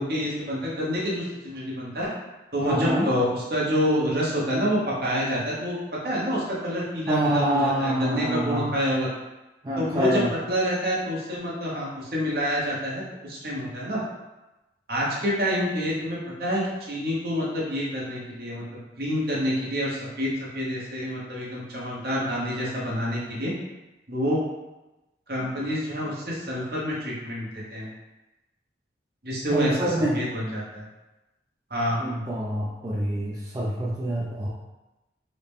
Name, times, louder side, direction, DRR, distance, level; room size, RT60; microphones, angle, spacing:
voice 1, 0.0-2.1 2.5-5.8 6.0-9.1 9.8-10.2 10.5-14.0 14.9-16.6 16.9-18.6 19.0-23.5 24.1-24.4 25.3-27.9 29.2-30.8 31.7-32.0, equal, 55° right, -5 dB, 1.0 m, -27 dB
voice 2, 2.6-3.1 7.1-8.7 9.6-10.3 29.5-30.2 32.0-34.5, right 1 dB, 20° right, -7 dB, 0.4 m, -26 dB
4.0 x 2.1 x 3.5 m, 1.0 s
head